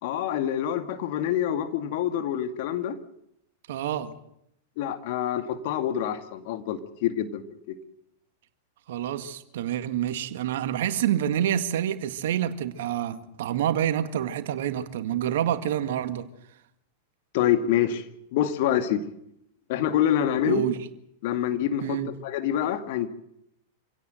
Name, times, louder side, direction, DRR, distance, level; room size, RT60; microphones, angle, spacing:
voice 1, 0.0-3.0 4.8-7.4 17.3-18.0 18.3-19.0 19.7-20.6 21.2-23.1, left 10 dB, 55° left, 2.2 m, -26 dB
voice 2, 3.7-4.1 8.9-16.3 20.5-20.8 21.8-22.1, right 10 dB, 65° right, 1.8 m, -27 dB
26.5 x 17.0 x 7.9 m
hypercardioid pair, 95°, 0 cm